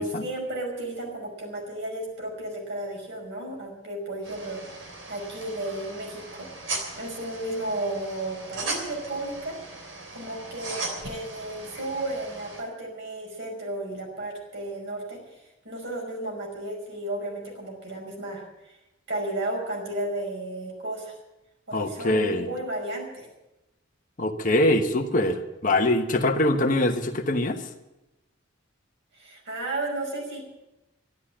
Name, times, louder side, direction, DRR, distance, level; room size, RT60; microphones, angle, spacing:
voice 1, 0.0-6.5 7.0-9.6 10.1-18.4 19.1-21.2 21.7-23.3 29.2-30.4, right 1 dB, 60° right, 0 dB, 5.5 m, -33 dB
sound 1, 4.2-12.6, right 3 dB, 80° right, 3.3 m, -38 dB
voice 2, 21.7-22.5 24.2-27.6, left 1 dB, 40° left, 4 dB, 1.2 m, -23 dB
12.0 x 12.0 x 8.8 m, 0.98 s
head